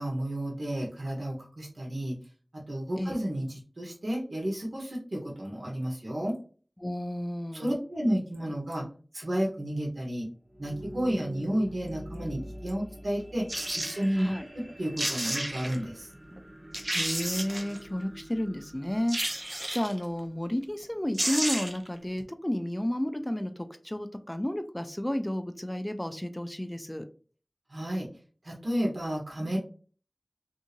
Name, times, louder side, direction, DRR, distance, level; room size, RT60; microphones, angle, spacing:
voice 1, 0.0-2.2 2.7-6.3 7.5-8.8 9.1-10.3 10.6-13.4 13.7-14.3 14.8-16.1 27.7-28.1 28.4-29.6, equal, 80° right, -2 dB, 0.9 m, -31 dB
voice 2, 6.8-7.7 14.2-14.5 16.9-19.2 19.7-27.1, left 1 dB, 20° left, 9 dB, 0.4 m, -32 dB
sound 1, 10.4-20.3, equal, 25° right, 1.4 m, -45 dB
sound 2, 13.5-14.0 14.7-14.8 15.0-15.8 16.3-16.4 16.7-17.8 19.1-20.0 20.8-20.9 21.1-21.9 22.2-22.3, right 1 dB, 40° right, 0.5 m, -31 dB
2.7 x 2.4 x 2.8 m, 0.40 s
wide cardioid pair, 45°, 0 cm